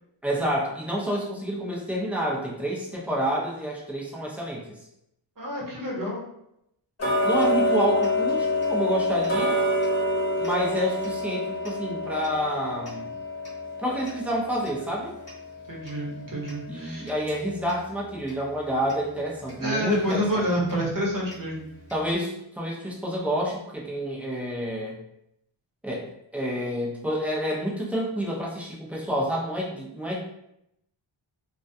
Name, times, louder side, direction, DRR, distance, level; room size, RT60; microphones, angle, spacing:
voice 1, 0.2-4.7 7.2-9.6 10.4-13.1 13.8-15.1 16.7-20.4 21.9-25.0 25.8-30.2, equal, 5° right, -4 dB, 0.5 m, -29 dB
voice 2, 5.4-6.2 15.6-17.1 19.6-21.7, equal, 40° right, -3 dB, 0.9 m, -28 dB
Tick-tock, 7.0-17.8 18.3-18.4 18.9-19.0 19.5-19.6 20.1-20.2 20.7-20.8 21.3-21.4 21.9-22.0, left 1 dB, 30° left, 0.9 m, -27 dB
2.3 x 2.2 x 2.6 m, 0.81 s
wide cardioid pair, 85°, 48 cm